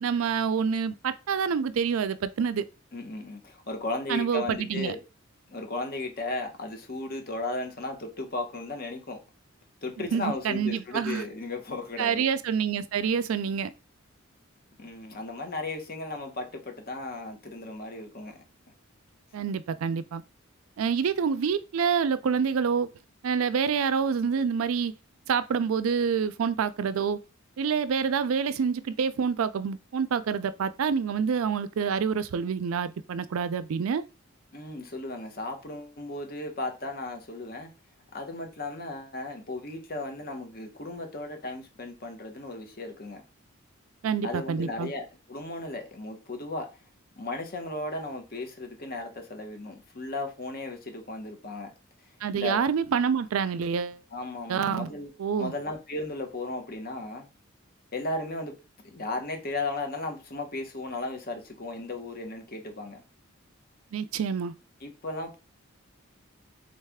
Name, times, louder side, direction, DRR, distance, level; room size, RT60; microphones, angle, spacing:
voice 1, 0.0-2.7 4.1-5.0 10.0-11.2 12.0-13.7 19.3-20.2 20.8-22.9 23.2-24.9 25.3-27.2 27.6-34.0 44.0-44.9 52.2-54.0 54.5-54.9 55.2-55.5 63.9-64.5, right 6 dB, 80° right, 0.4 m, -27 dB
voice 2, 2.9-5.0 5.5-9.2 9.8-12.3 14.8-18.4 34.5-37.7 38.1-43.2 44.2-46.7 47.2-51.7 52.3-52.6 54.1-55.1 55.4-57.3 57.9-58.5 58.8-63.0 64.8-65.4, left 2 dB, 45° left, 0.9 m, -35 dB
3.9 x 3.2 x 3.5 m
head